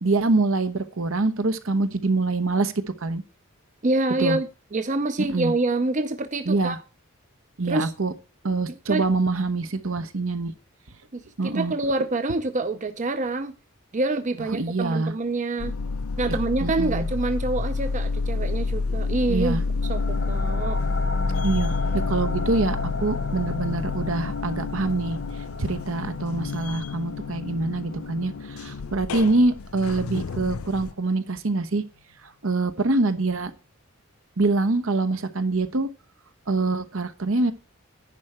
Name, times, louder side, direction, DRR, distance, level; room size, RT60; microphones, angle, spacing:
voice 1, 0.0-2.7 3.0-3.2 4.2-4.4 5.2-5.5 6.5-6.8 7.6-8.1 8.4-10.5 11.4-11.7 14.5-15.1 16.3-17.1 19.3-19.6 21.4-25.2 25.6-31.8 32.2-33.5 34.4-35.9 36.5-37.5, right 3 dB, 70° right, 1.0 m, -25 dB
voice 2, 3.8-6.8 7.7-7.9 8.9-9.0 11.1-13.6 13.9-15.7 16.2-19.6 19.9-20.8, right 2 dB, 35° right, 0.6 m, -26 dB
sound 1, 15.6-30.9, left 3 dB, 90° left, 0.5 m, -29 dB
sound 2, 19.8-31.2, left 4 dB, 70° left, 1.7 m, -35 dB
10.5 x 4.6 x 7.7 m
head